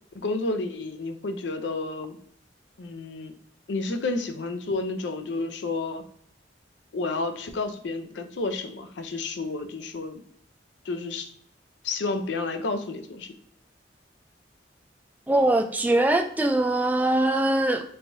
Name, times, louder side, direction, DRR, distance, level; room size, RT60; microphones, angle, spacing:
voice 1, 0.1-2.2 2.8-3.3 3.7-6.0 6.9-10.2 10.8-11.3 11.8-13.3, left 3 dB, 85° left, 7 dB, 0.5 m, -30 dB
voice 2, 15.3-17.8, right 1 dB, 10° right, 4 dB, 0.3 m, -22 dB
3.3 x 3.3 x 2.6 m, 0.64 s
head